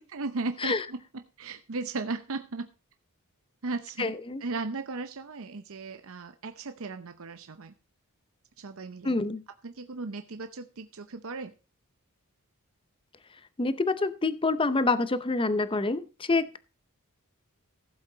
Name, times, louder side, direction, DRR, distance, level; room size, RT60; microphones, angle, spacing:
voice 1, 0.1-2.7 3.6-4.1 4.4-7.7 8.6-9.2 9.6-11.5, right 3 dB, 65° right, 8 dB, 0.8 m, -36 dB
voice 2, 4.0-4.4 9.0-9.4 13.6-16.6, left 3 dB, 25° left, 13 dB, 0.7 m, -27 dB
15.5 x 7.7 x 3.9 m, 0.33 s
head